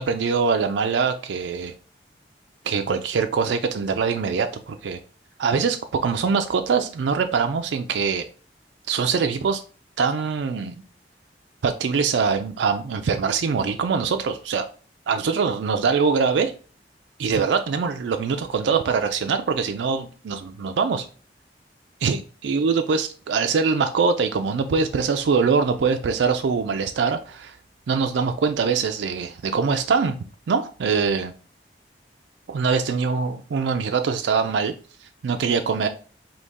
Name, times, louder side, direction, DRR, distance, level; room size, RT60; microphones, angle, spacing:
voice 1, 0.0-1.7 2.6-5.0 5.4-8.2 8.9-9.6 10.0-10.8 11.6-14.7 15.1-16.5 17.2-21.1 22.0-27.5 27.9-30.2 30.5-31.3 32.5-34.7 35.2-35.9, right 5 dB, 85° right, 0.4 m, -23 dB
4.0 x 2.8 x 3.5 m
head